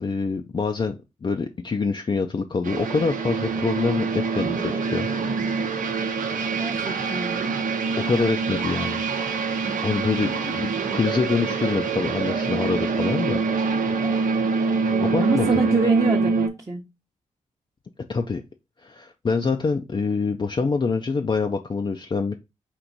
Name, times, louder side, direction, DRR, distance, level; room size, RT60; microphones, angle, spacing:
voice 1, 0.0-5.1 8.0-9.0 9.8-13.4 15.0-15.6 18.1-18.4 18.8-22.3, left 4 dB, 35° left, 4 dB, 0.5 m, -25 dB
sound 1, 2.6-16.5, right 4 dB, 75° right, 0.8 m, -25 dB
voice 2, 6.6-7.4 14.9-16.8, right 4 dB, 25° right, -2 dB, 0.9 m, -26 dB
4.5 x 2.5 x 3.8 m, 0.25 s
cardioid pair, 60°, 14 cm